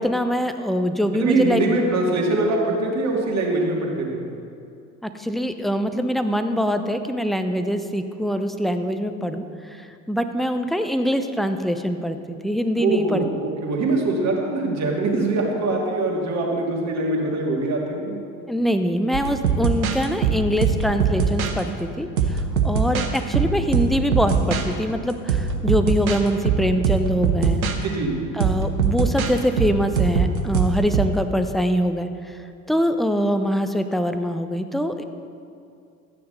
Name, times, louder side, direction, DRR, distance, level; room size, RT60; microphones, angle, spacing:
voice 1, 0.0-1.6 5.0-9.4 9.7-13.2 18.5-27.6 28.3-32.4 32.7-35.0, equal, ahead, 7 dB, 0.6 m, -24 dB
voice 2, 1.1-4.2 12.8-18.2 27.8-28.3, right 2 dB, 40° right, -1 dB, 2.4 m, -23 dB
sound 1, 19.1-21.6 22.2-24.7 25.1-27.8 28.4-31.2, right 5 dB, 80° right, 0.9 m, -22 dB
13.0 x 9.4 x 4.0 m, 2.5 s
figure-of-eight pair, 65°, 42 cm